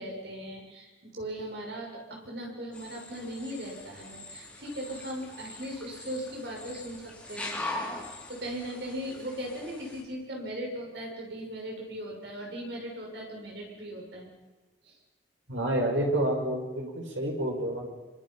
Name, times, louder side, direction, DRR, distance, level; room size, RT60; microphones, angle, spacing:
voice 1, 0.0-7.6 8.3-14.3 14.8-15.0, equal, 60° right, 0 dB, 7.1 m, -38 dB
sound 1, 2.7-10.0, left 2 dB, 5° left, 4.0 m, -41 dB
voice 2, 15.5-17.8, right 1 dB, 75° right, 0 dB, 6.4 m, -29 dB
26.0 x 25.5 x 5.9 m, 1.2 s
head